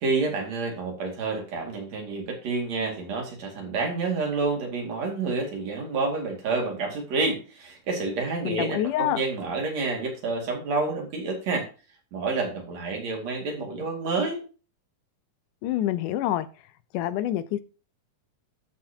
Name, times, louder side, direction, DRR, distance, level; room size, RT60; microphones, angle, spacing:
voice 1, 0.0-11.7 12.1-14.4, right 3 dB, 60° right, 3.4 m, -29 dB
voice 2, 8.4-9.2 15.6-16.5 16.9-17.6, left 13 dB, 85° left, 2.2 m, -26 dB
13.0 x 6.3 x 2.9 m
omnidirectional pair, 3.6 m